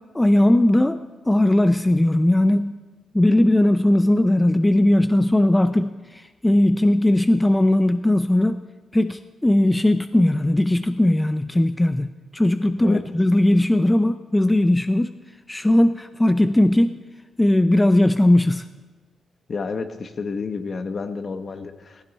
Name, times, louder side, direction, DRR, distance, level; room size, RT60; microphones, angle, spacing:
voice 1, 0.1-2.7 3.1-8.6 8.9-15.1 15.5-17.0 17.4-18.6, left 1 dB, 10° left, 10 dB, 0.5 m, -18 dB
voice 2, 19.5-22.0, left 4 dB, 50° left, 8 dB, 1.2 m, -30 dB
15.5 x 15.5 x 4.2 m, 1.3 s
cardioid pair, 85°, 0 cm